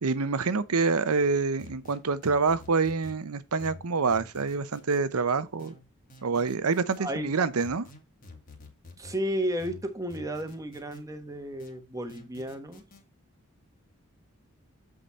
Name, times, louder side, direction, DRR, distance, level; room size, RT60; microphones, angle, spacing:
voice 1, 0.0-5.7 6.2-7.9, right 4 dB, 85° right, 0.7 m, -26 dB
sound 1, 1.6-3.2 3.6-5.0 5.6-7.0 7.6-9.2 9.6-11.0 11.6-13.0, left 2 dB, 40° left, 1.9 m, -49 dB
voice 2, 7.0-7.3 9.0-12.8, equal, 15° right, 1.2 m, -33 dB
7.9 x 4.9 x 4.2 m
head